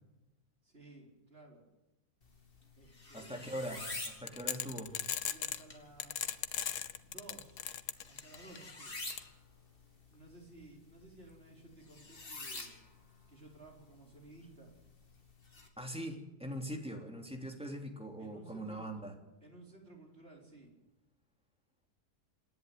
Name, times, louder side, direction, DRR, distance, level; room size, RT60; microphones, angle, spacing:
voice 1, 0.6-1.6 2.8-3.6 5.3-7.8 8.1-9.0 10.1-12.8 13.3-14.7 18.2-19.0 19.4-20.7, right 2 dB, 40° right, 0 dB, 4.4 m, -56 dB
sound 1, 2.2-15.7, left 2 dB, 35° left, 2.7 m, -49 dB
voice 2, 3.1-5.0 15.8-19.1, right 1 dB, 5° right, 2 dB, 3.2 m, -42 dB
sound 2, 4.3-5.6 6.0-8.6 9.1-9.2, left 9 dB, 90° left, 1.5 m, -37 dB
27.0 x 11.0 x 9.5 m, 1.0 s
omnidirectional pair, 1.7 m